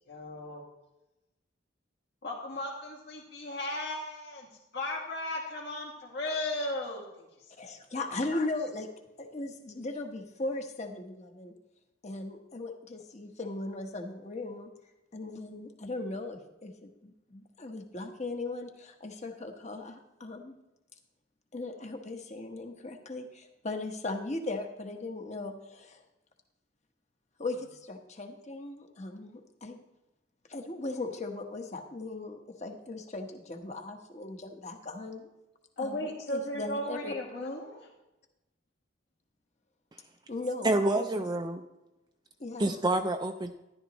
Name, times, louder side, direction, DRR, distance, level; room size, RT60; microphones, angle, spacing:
voice 1, 0.1-0.6 2.2-4.5 4.7-7.3 35.8-37.9, left 1 dB, 60° left, -2 dB, 2.2 m, -36 dB
voice 2, 7.6-8.9 9.2-11.5 12.0-14.7 15.1-20.6 21.5-26.0 27.4-29.8 30.5-35.3 35.8-37.1 40.3-40.7 40.9-41.2 42.4-42.8, left 2 dB, 40° left, 4 dB, 1.2 m, -38 dB
voice 3, 40.6-41.6 42.6-43.5, right 2 dB, 20° right, 5 dB, 0.5 m, -27 dB
13.5 x 11.0 x 3.0 m, 0.96 s
head